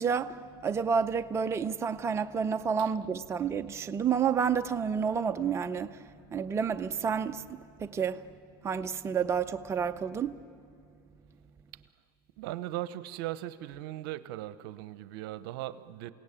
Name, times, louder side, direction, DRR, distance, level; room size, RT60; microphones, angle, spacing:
voice 1, 0.0-6.0 6.3-7.4 7.8-8.2 8.6-10.4, right 6 dB, 20° right, 0.6 m, -30 dB
voice 2, 12.4-16.1, right 14 dB, 70° right, 0.9 m, -38 dB
28.5 x 17.5 x 8.9 m
supercardioid pair, 115°, 12 cm